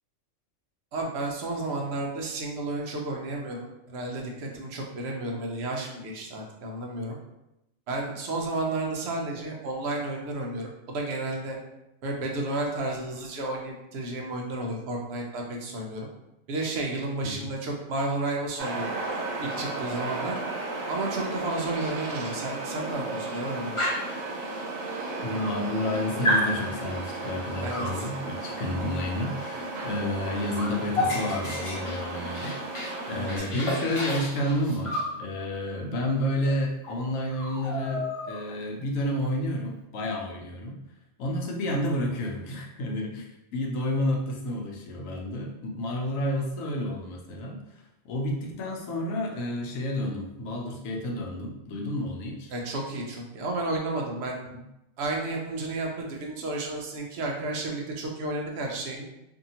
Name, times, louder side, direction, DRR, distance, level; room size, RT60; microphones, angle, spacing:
voice 1, 0.9-7.2 7.9-11.6 12.0-16.1 16.5-18.9 19.4-20.4 20.9-23.9 27.6-27.9 33.1-33.3 52.5-54.3 55.0-59.0, right 2 dB, 60° right, 0 dB, 0.8 m, -32 dB
sound 1, 18.6-33.4, right 2 dB, 85° right, 1.0 m, -34 dB
Dog, 23.8-24.2 25.0-25.1 25.4-25.9 26.2-26.5 27.7-28.0 29.8-30.0 30.3-33.0 33.3-35.1 36.4-36.5 36.8-37.0 37.3-38.6, left 1 dB, 35° left, 0.6 m, -30 dB
voice 2, 25.2-40.8 41.2-52.5 54.5-54.6, left 1 dB, 80° left, 0 dB, 1.0 m, -30 dB
2.7 x 2.6 x 2.7 m, 0.90 s
omnidirectional pair, 1.4 m